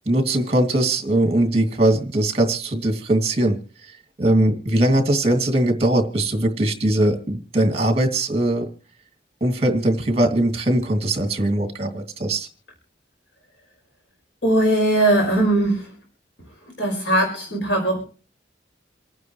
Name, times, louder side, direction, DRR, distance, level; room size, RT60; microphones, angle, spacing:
voice 1, 0.1-3.9 4.2-8.7 9.4-12.5, right 1 dB, 35° right, 5 dB, 2.4 m, -20 dB
voice 2, 14.4-15.9 16.8-18.0, right 1 dB, 85° left, -1 dB, 5.5 m, -19 dB
28.0 x 9.4 x 3.2 m, 0.38 s
head